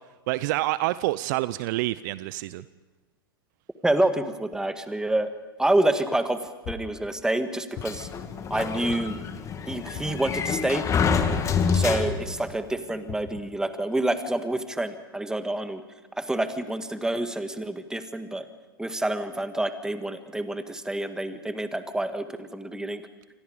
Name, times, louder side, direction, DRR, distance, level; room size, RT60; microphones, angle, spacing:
voice 1, 0.3-2.6, right 18 dB, 55° right, 17 dB, 0.7 m, -27 dB
voice 2, 3.8-5.3 5.6-8.1 8.5-9.2 9.7-10.9 11.7-15.8 16.2-18.5 18.8-23.0, right 1 dB, 5° right, 9 dB, 1.8 m, -27 dB
sound 1, 6.6-7.1 7.8-8.2 8.9-9.3 9.9-10.3 11.0-11.4 12.1-12.4 13.1-13.4, left 10 dB, 40° left, 1.9 m, -39 dB
Sliding door, 7.8-12.5, left 6 dB, 25° left, 2.2 m, -27 dB
28.5 x 25.0 x 5.2 m, 1.2 s
hypercardioid pair, 100°, 12 cm